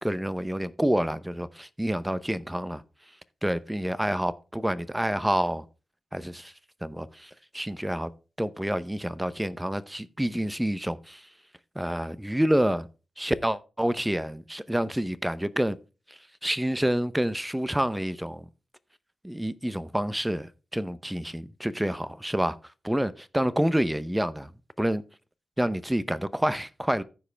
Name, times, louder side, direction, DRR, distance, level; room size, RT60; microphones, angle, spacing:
voice 1, 0.0-2.8 3.4-5.6 6.1-6.5 6.8-8.1 8.4-11.3 11.8-12.9 13.2-15.8 16.1-18.4 19.2-22.6 22.8-24.5 24.8-25.0 25.6-27.0, equal, 5° right, 0.7 m, -28 dB
14.5 x 4.9 x 3.3 m
cardioid pair, 75°, 0 cm